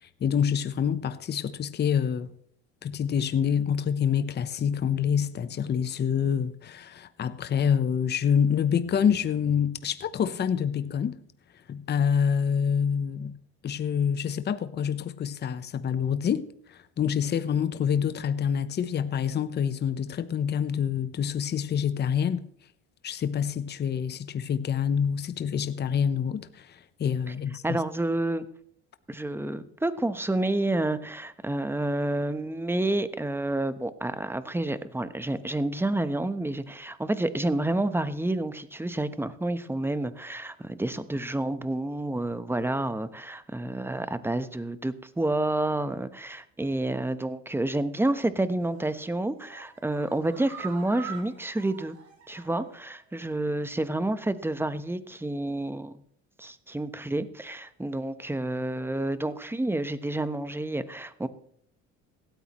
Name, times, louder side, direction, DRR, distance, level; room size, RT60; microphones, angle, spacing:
voice 1, 0.2-2.3 2.8-11.2 11.7-13.3 13.6-22.4 23.0-27.8, left 7 dB, 35° left, 0.8 m, -27 dB
voice 2, 27.6-28.5 29.1-52.0 52.3-56.0 56.4-61.3, right 2 dB, 5° right, 1.0 m, -29 dB
sound 1, 48.6-49.0 49.4-52.8 53.1-53.2 53.5-53.6, right 7 dB, 50° right, 4.3 m, -44 dB
17.0 x 13.0 x 3.1 m
supercardioid pair, 90°, 31 cm